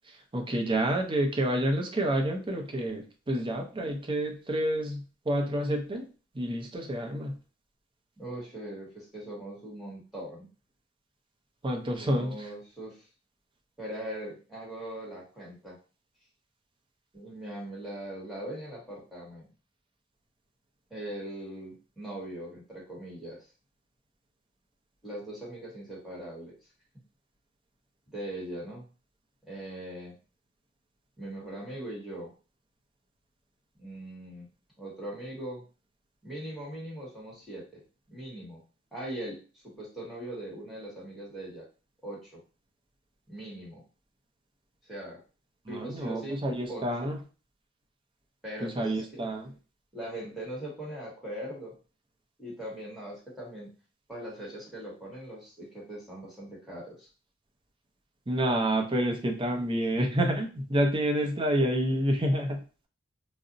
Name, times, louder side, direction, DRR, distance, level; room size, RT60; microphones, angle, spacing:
voice 1, 0.1-6.1 6.3-7.4 11.6-12.5 45.7-47.2 48.6-49.5 58.3-62.6, right 1 dB, 25° right, 3 dB, 0.5 m, -28 dB
voice 2, 8.2-10.5 12.0-13.0 13.8-15.8 17.1-19.5 20.9-23.5 25.0-26.6 28.1-28.9 29.5-30.2 31.2-32.3 33.8-34.5 34.8-35.6 36.2-38.6 38.9-41.6 42.0-42.4 43.3-43.8 44.8-45.2 45.7-46.4 46.7-47.1 48.4-49.3 49.9-51.7 52.4-53.7 54.1-57.1, right 1 dB, ahead, -6 dB, 1.2 m, -40 dB
2.5 x 2.0 x 3.8 m, 0.35 s
head